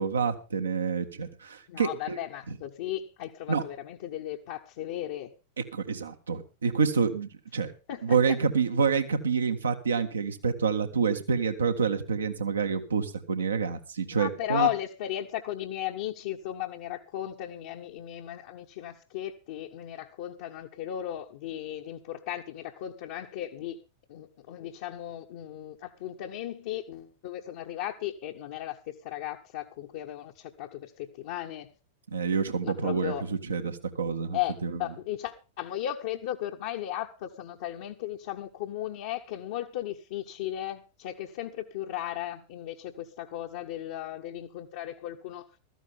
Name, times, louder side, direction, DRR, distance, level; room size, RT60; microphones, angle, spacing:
voice 1, 0.0-2.2 3.5-3.6 5.7-7.7 8.0-14.7 32.1-34.8, right 5 dB, 70° right, 1.6 m, -28 dB
voice 2, 1.7-5.3 7.9-8.4 14.1-23.8 24.1-31.7 32.6-33.3 34.3-45.5, left 12 dB, 55° left, 1.1 m, -36 dB
15.5 x 14.0 x 3.6 m
figure-of-eight pair, 90°, 0 cm